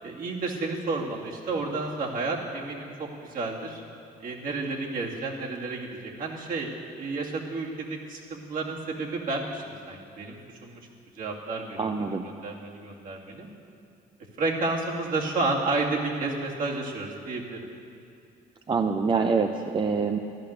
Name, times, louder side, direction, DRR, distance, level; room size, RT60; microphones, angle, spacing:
voice 1, 0.0-3.8 4.2-10.8 11.1-13.5 14.4-17.6, right 3 dB, 55° right, -2 dB, 2.6 m, -31 dB
voice 2, 11.8-12.3 18.7-20.2, right 5 dB, 30° right, 5 dB, 0.6 m, -25 dB
13.5 x 11.5 x 6.7 m, 2.5 s
cardioid pair, 110°, 17 cm